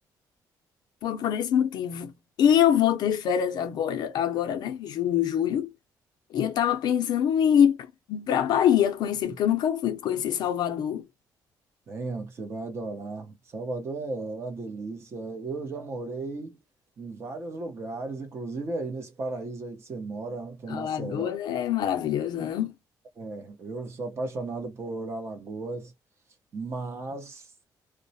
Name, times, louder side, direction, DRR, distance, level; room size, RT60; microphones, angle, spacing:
voice 1, 1.0-2.1 2.4-5.7 6.3-11.1 20.7-22.7, left 9 dB, 70° left, 0.5 m, -24 dB
voice 2, 11.9-16.6 17.0-21.3 23.2-25.9 26.5-27.5, right 3 dB, 35° right, 0.8 m, -35 dB
2.2 x 2.0 x 2.7 m
cardioid pair, 150°, 7 cm